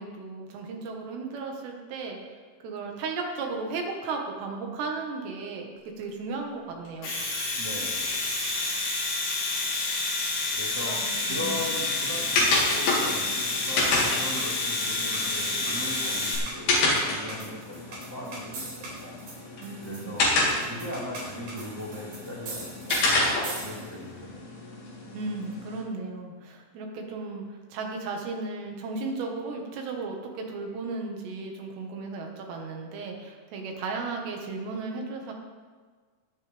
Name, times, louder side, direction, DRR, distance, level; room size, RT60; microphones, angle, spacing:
voice 1, 0.0-5.7 6.0-7.1 10.8-11.6 19.6-20.2 25.1-27.5 27.7-35.3, right 3 dB, 90° right, 1 dB, 3.8 m, -35 dB
Domestic sounds home sounds, 6.9-16.4, left 3 dB, 85° left, 7.0 m, -29 dB
voice 2, 7.5-8.3 10.5-11.0 11.3-19.2 19.5-24.4, left 1 dB, 25° right, -9 dB, 3.1 m, -39 dB
sound 1, 10.6-24.1, right 2 dB, 70° right, 6.1 m, -43 dB
sound 2, 11.2-25.8, left 2 dB, 70° left, 4.3 m, -30 dB
20.5 x 9.6 x 3.5 m, 1.5 s
omnidirectional pair, 4.7 m